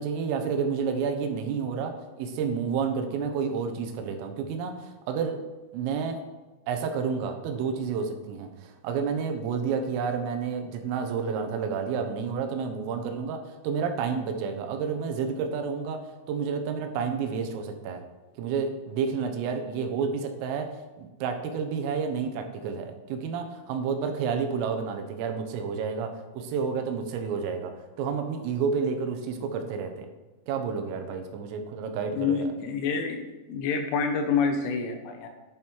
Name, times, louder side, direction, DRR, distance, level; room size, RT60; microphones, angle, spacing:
voice 1, 0.0-5.4 5.7-6.2 6.7-18.0 18.4-27.7 28.0-30.1 30.5-32.4, right 6 dB, 85° right, 6 dB, 3.8 m, -30 dB
voice 2, 32.2-35.3, left 5 dB, 75° left, 5 dB, 3.7 m, -27 dB
11.0 x 11.0 x 4.6 m, 1.2 s
omnidirectional pair, 5.8 m